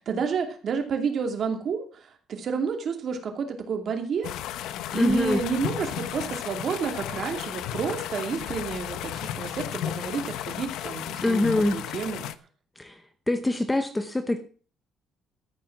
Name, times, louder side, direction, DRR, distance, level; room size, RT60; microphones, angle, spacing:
voice 1, 0.0-4.3 4.9-12.3, right 6 dB, 40° right, 5 dB, 2.6 m, -30 dB
sound 1, 4.2-12.3, left 11 dB, 80° left, 0.9 m, -34 dB
voice 2, 4.9-5.4 11.2-11.8 12.8-13.0 13.3-14.4, left 2 dB, 10° left, 9 dB, 0.8 m, -24 dB
13.5 x 9.1 x 6.0 m, 0.40 s
cardioid pair, 180°, 0 cm